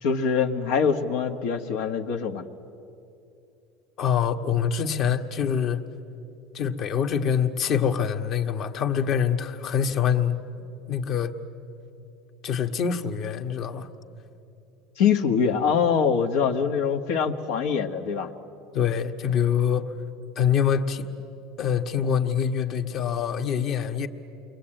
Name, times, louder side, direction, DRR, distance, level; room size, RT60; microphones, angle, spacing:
voice 1, 0.0-2.4 15.0-18.3, left 6 dB, 80° left, 4 dB, 1.4 m, -24 dB
voice 2, 4.0-5.8 6.5-10.4 10.9-11.3 12.4-13.9 18.7-19.9 20.3-21.1 21.6-24.1, left 7 dB, 45° left, 6 dB, 1.4 m, -25 dB
29.0 x 23.0 x 8.9 m, 2.8 s
supercardioid pair, 125°, 0 cm